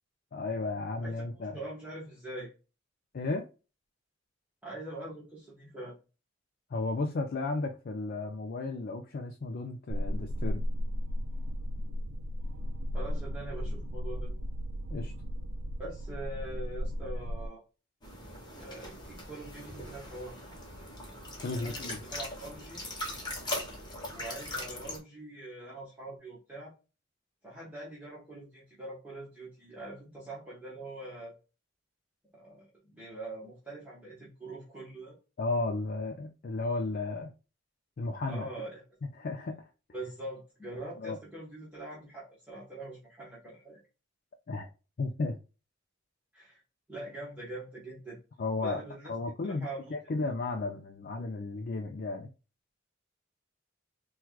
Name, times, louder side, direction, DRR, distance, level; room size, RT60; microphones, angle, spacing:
voice 1, 0.3-1.6 3.1-3.4 6.7-10.7 14.9-15.1 21.4-22.0 35.4-37.3 38.0-38.5 39.2-39.7 41.0-41.2 44.5-44.7 45.0-45.4 48.4-48.8 49.1-52.3, left 3 dB, 50° left, 0.4 m, -34 dB
voice 2, 1.0-2.5 4.6-6.0 12.9-14.3 15.8-17.6 18.5-20.4 21.5-22.8 24.1-26.7 27.4-31.3 32.3-35.2 38.3-38.8 39.9-43.8 46.3-46.6 46.9-48.2 48.6-49.1 49.4-50.0, right 2 dB, 10° right, 1.2 m, -43 dB
sound 1, 9.9-17.5, equal, 90° right, 0.3 m, -35 dB
sound 2, 18.0-25.0, left 1 dB, 25° left, 1.0 m, -40 dB
4.5 x 2.3 x 2.3 m
head